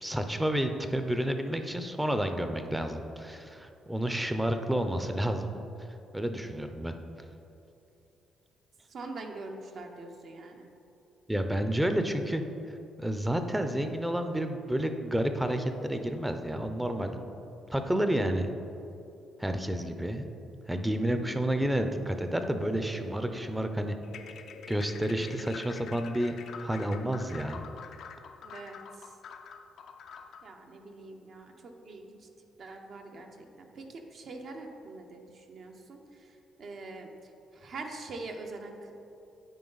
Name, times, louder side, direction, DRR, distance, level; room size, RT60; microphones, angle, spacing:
voice 1, 0.0-5.5 6.1-6.9 11.3-12.4 13.0-17.2 17.7-18.5 19.4-20.3 20.7-24.0 24.7-27.6, right 1 dB, 10° right, 7 dB, 0.5 m, -30 dB
voice 2, 8.9-10.7 28.4-29.1 30.4-32.3 32.6-37.1 37.5-38.9, right 3 dB, 60° right, 3 dB, 0.8 m, -44 dB
sound 1, 24.0-30.5, left 6 dB, 70° left, 0.4 m, -46 dB
9.3 x 4.5 x 4.0 m, 2.8 s
cardioid pair, 90°, 0 cm